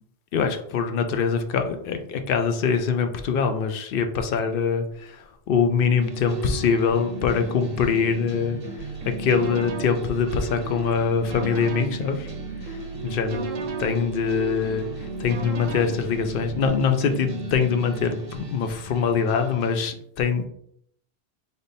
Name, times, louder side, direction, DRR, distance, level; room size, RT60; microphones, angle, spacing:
voice 1, 0.3-12.3 12.6-13.4 13.8-14.9 15.2-20.5, left 6 dB, 65° left, 7 dB, 0.7 m, -24 dB
sound 1, 6.0-19.9, right 3 dB, 40° right, 0.7 m, -36 dB
sound 2, 8.8-16.7, right 4 dB, 75° right, 0.9 m, -37 dB
3.9 x 3.5 x 2.6 m, 0.69 s
omnidirectional pair, 1.1 m